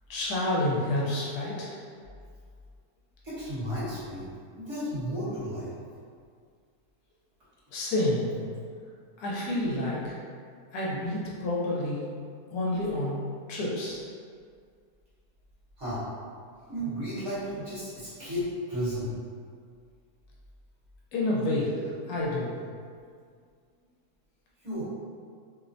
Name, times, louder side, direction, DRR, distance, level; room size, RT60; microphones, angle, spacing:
voice 1, 0.1-1.7 7.7-8.3 9.2-10.1 10.7-12.1 12.5-13.2 13.5-14.1 21.1-22.5, left 1 dB, 75° left, -5 dB, 1.0 m, -29 dB
voice 2, 3.2-4.3 4.5-5.7 15.8-16.0 16.7-19.1 24.6-24.9, equal, 50° right, -11 dB, 1.2 m, -33 dB
2.8 x 2.0 x 2.5 m, 2.1 s
omnidirectional pair, 1.7 m